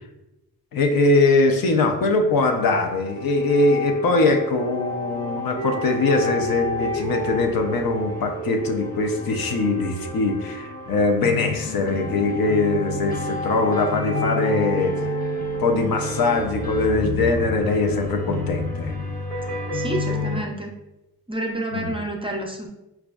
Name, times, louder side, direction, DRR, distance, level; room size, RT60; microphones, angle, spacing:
voice 1, 0.7-14.9 15.6-18.9 19.3-19.5 21.7-21.9, left 3 dB, 65° left, 4 dB, 0.6 m, -22 dB
sound 1, 2.3-20.4, left 1 dB, 25° left, 0.6 m, -30 dB
voice 2, 19.7-20.7 21.3-22.7, right 1 dB, 15° right, 0 dB, 0.4 m, -29 dB
5.0 x 2.4 x 2.3 m, 0.94 s
cardioid pair, 100°, 38 cm